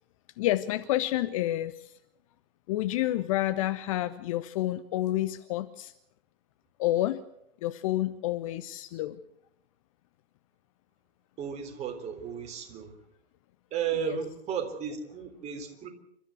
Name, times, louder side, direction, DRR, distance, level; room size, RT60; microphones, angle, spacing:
voice 1, 0.4-1.9 2.7-5.9 6.8-7.2 7.6-9.2 14.0-14.2, left 15 dB, 35° left, 12 dB, 0.8 m, -29 dB
voice 2, 11.4-12.9 13.7-15.9, right 8 dB, 20° right, 4 dB, 3.6 m, -34 dB
28.5 x 13.5 x 8.0 m, 0.77 s
figure-of-eight pair, 115°, 31 cm